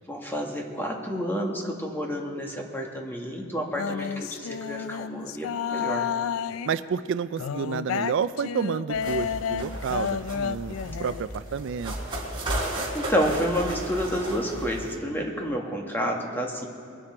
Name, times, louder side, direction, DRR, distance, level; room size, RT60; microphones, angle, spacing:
voice 1, 0.1-6.1 12.9-16.7, equal, 10° left, 0 dB, 1.6 m, -29 dB
sound 1, 3.8-6.8 7.4-11.3, left 7 dB, 85° left, 0.3 m, -31 dB
voice 2, 6.6-11.9, right 6 dB, 65° right, 14 dB, 0.4 m, -30 dB
sound 2, 8.9-15.0, right 1 dB, 25° right, 3.6 m, -34 dB
22.0 x 9.7 x 4.4 m, 2.7 s
head